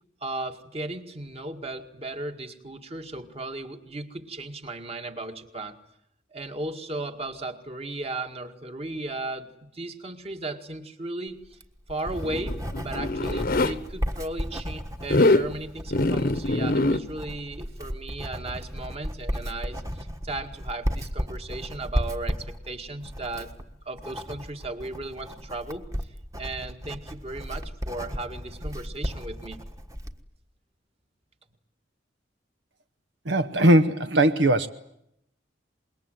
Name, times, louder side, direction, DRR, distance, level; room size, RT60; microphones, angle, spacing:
voice 1, 0.2-5.8 6.3-11.6 11.9-23.5 23.9-29.6, right 2 dB, 35° right, 2.0 m, -36 dB
Writing, 11.4-30.2, equal, 20° right, 1.5 m, -34 dB
Zipper (clothing), 12.1-13.7 15.0-15.5 15.9-17.0, left 2 dB, 55° left, 1.1 m, -23 dB
voice 2, 33.2-34.7, right 1 dB, 75° right, 1.0 m, -19 dB
26.0 x 22.0 x 9.2 m
head